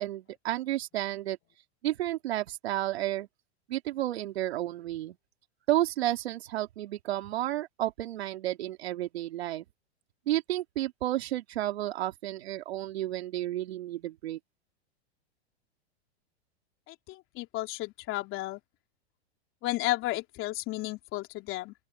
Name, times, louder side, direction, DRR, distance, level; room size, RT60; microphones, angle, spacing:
voice 1, 0.0-1.4 1.8-3.3 3.7-5.2 5.7-9.6 10.3-14.4, right 14 dB, 70° right, 3.1 m, -31 dB
voice 2, 16.9-18.6 19.6-21.7, left 18 dB, 40° left, 3.3 m, -33 dB
open air
hypercardioid pair, 120°, 33 cm